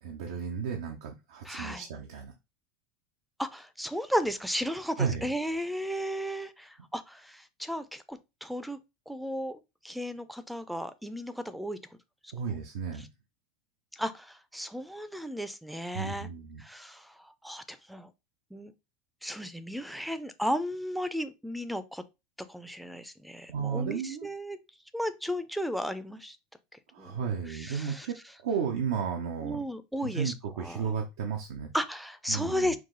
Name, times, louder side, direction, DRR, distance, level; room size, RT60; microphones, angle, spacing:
voice 1, 0.0-2.3 5.0-5.3 12.3-13.1 15.9-16.6 23.5-24.3 26.9-29.6 30.0-31.7 32.3-32.7, right 6 dB, 80° right, 0.7 m, -33 dB
voice 2, 1.4-1.8 3.4-8.8 9.1-9.6 9.8-11.8 13.9-16.3 16.6-18.1 18.5-18.7 19.2-22.0 22.5-24.6 24.9-26.4 27.0-27.1 27.5-28.1 29.4-30.3 30.6-30.9 31.7-32.8, equal, ahead, 0.5 m, -34 dB
4.8 x 2.0 x 3.8 m
supercardioid pair, 110°, 0 cm